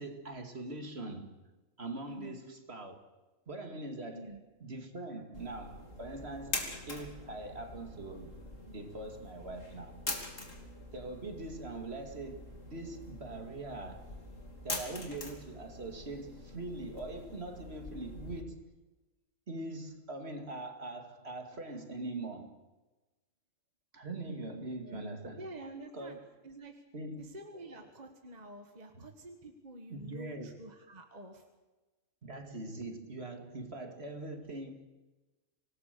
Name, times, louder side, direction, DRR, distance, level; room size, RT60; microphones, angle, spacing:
voice 1, 0.0-1.4 1.8-3.0 3.5-8.3 8.7-10.0 10.9-14.1 14.6-18.7 19.5-22.6 23.9-25.5 25.8-26.1 26.9-27.3 27.5-27.9 28.9-29.0 29.9-30.5 32.2-34.9, right 2 dB, 45° right, 2.5 m, -42 dB
voice 2, 2.1-2.4 4.1-4.4 24.8-25.0 25.4-26.2 26.4-26.8 27.2-31.4, right 1 dB, 30° right, 1.7 m, -48 dB
sound 1, 5.3-18.4, left 2 dB, 60° left, 3.5 m, -44 dB
25.5 x 19.0 x 6.8 m
omnidirectional pair, 1.5 m